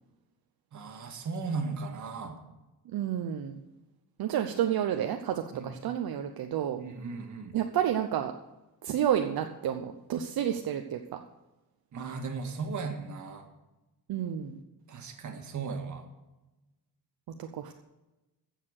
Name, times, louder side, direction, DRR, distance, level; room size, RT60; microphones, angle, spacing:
voice 1, 0.7-2.4 5.5-5.7 6.8-7.6 11.9-13.5 14.9-16.0, right 4 dB, 50° right, 4 dB, 1.8 m, -36 dB
voice 2, 2.9-3.6 4.2-6.8 7.5-8.3 8.8-11.2 14.1-14.6 17.4-17.8, right 10 dB, 70° right, 5 dB, 0.8 m, -30 dB
15.0 x 6.7 x 6.5 m, 1.0 s
wide cardioid pair, 165°, 39 cm